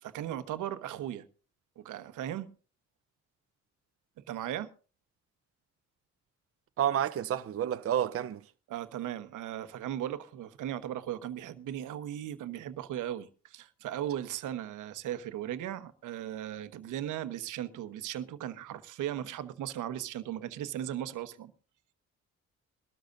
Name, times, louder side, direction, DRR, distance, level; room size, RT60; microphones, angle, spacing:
voice 1, 0.0-1.3 1.8-2.5 4.3-4.7 8.7-21.5, right 11 dB, 80° right, 1.1 m, -37 dB
voice 2, 6.8-8.4, right 10 dB, 50° right, 0.7 m, -29 dB
21.5 x 13.0 x 2.6 m
cardioid pair, 90°, 30 cm